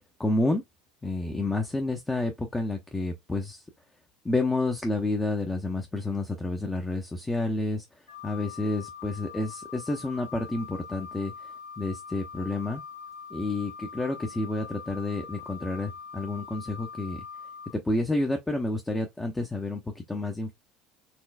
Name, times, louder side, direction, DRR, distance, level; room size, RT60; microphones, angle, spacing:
voice 1, 0.2-0.6 1.0-3.6 4.2-7.8 8.2-11.3 11.8-12.8 13.3-17.2 17.7-20.5, left 2 dB, 15° left, 0.8 m, -29 dB
Wind instrument woodwind instrument, 8.1-17.7, left 6 dB, 85° left, 2.6 m, -43 dB
4.4 x 3.1 x 2.3 m
hypercardioid pair, 70°, 0 cm